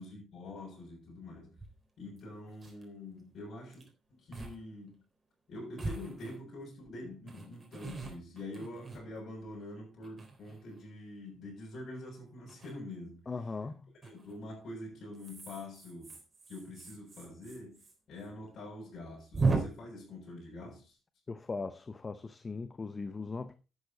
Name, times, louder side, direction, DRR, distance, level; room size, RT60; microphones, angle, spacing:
voice 1, 0.0-1.6 2.0-3.8 4.1-5.0 5.5-13.3 14.0-16.2 16.5-20.9, left 1 dB, 60° left, 6.7 m, -45 dB
sound 1, 1.6-1.7 2.2-2.3 2.5-2.8 3.7-3.9 4.3-4.6 4.9-5.0 5.8-6.7 7.3-9.5 10.0-10.8 12.5-12.7 14.0-14.4 15.1-17.9 18.2-18.3 18.6-18.7 19.3-19.6, right 4 dB, 30° right, 3.8 m, -37 dB
voice 2, 13.3-13.8 21.3-23.5, left 4 dB, 30° left, 0.8 m, -39 dB
11.5 x 8.3 x 4.0 m
cardioid pair, 90°, 0 cm